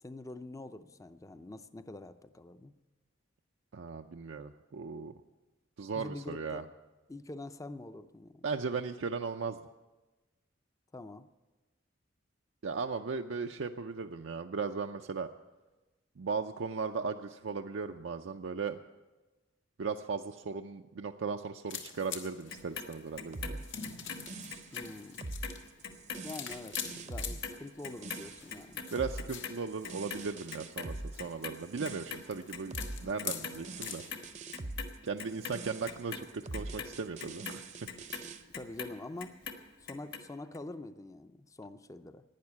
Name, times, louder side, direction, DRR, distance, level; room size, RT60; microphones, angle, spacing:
voice 1, 0.0-2.7 5.9-6.7 7.1-8.5 10.9-11.3 24.7-25.2 26.2-26.8 27.1-28.8 38.6-39.3 39.8-42.2, left 2 dB, 15° left, 11 dB, 0.5 m, -45 dB
voice 2, 3.7-5.1 5.8-6.6 8.4-9.6 12.6-15.3 16.2-18.8 19.8-23.6 28.9-34.0 35.0-36.3 36.5-37.6, right 5 dB, 85° right, 4 dB, 0.5 m, -37 dB
sound 1, 21.7-34.3, left 7 dB, 80° left, 1.4 m, -46 dB
Clock, 22.5-24.9 25.2-31.6 31.8-32.9 33.2-34.2 34.5-38.9 39.2-40.2 40.5-40.6, left 6 dB, 60° left, 1.5 m, -42 dB
sound 2, 23.3-38.4, right 2 dB, 40° right, 0.6 m, -44 dB
12.0 x 9.4 x 9.7 m, 1.2 s
head